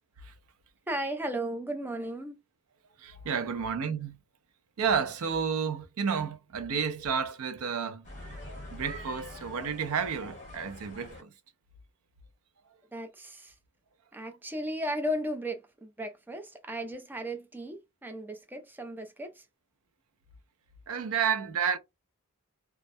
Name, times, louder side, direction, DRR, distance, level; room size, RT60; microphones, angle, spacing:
voice 1, 0.9-2.4 12.9-13.5 14.1-19.5, equal, 10° right, 0.4 m, -35 dB
voice 2, 3.0-4.2 4.8-8.1 8.7-11.3 20.9-21.8, right 6 dB, 70° right, 0.4 m, -31 dB
sound 1, 8.0-11.2, left 1 dB, 35° left, 0.9 m, -44 dB
2.3 x 2.1 x 2.5 m
head